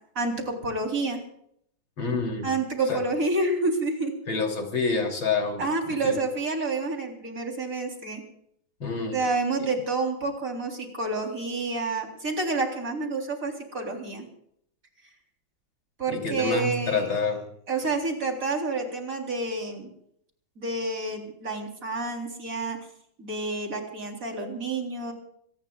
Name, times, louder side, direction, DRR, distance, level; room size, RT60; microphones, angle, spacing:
voice 1, 0.2-1.2 2.4-4.1 5.6-8.2 9.1-14.3 16.0-17.1 17.7-19.9 20.6-22.8 23.2-25.1, right 3 dB, 40° right, 2 dB, 3.9 m, -29 dB
voice 2, 2.0-2.5 2.9-3.0 4.3-6.2 8.8-9.2 16.1-17.4, left 4 dB, 70° left, 3 dB, 3.9 m, -28 dB
26.0 x 18.5 x 2.4 m, 0.70 s
omnidirectional pair, 2.2 m